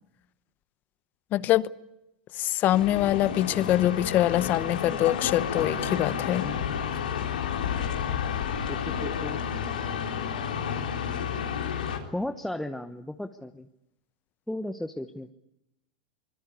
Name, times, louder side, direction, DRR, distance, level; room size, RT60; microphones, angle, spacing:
voice 1, 1.3-1.7 2.4-6.5, left 14 dB, 45° left, 0.9 m, -24 dB
sound 1, 2.7-12.0, left 7 dB, 90° left, 3.7 m, -31 dB
voice 2, 5.6-5.9 6.4-6.9 8.7-9.4 12.1-13.7 14.5-15.3, left 1 dB, 5° left, 1.1 m, -35 dB
24.0 x 21.5 x 8.4 m
hypercardioid pair, 110°, 4 cm